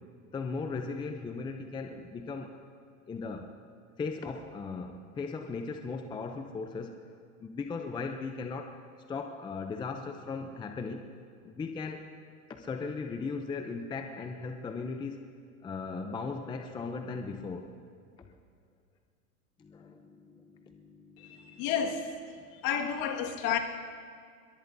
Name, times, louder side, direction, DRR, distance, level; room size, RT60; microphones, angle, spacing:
voice 1, 0.3-2.6 3.1-3.5 4.0-7.0 7.4-8.7 9.1-11.1 11.4-12.1 12.5-15.2 15.6-17.8 18.2-18.3 19.6-21.7 22.4-22.6, left 4 dB, 10° left, 5 dB, 0.5 m, -38 dB
voice 2, 21.6-22.0 22.6-23.6, left 8 dB, 50° left, 2 dB, 1.9 m, -30 dB
23.0 x 22.0 x 2.7 m, 2.1 s
hypercardioid pair, 120°, 44 cm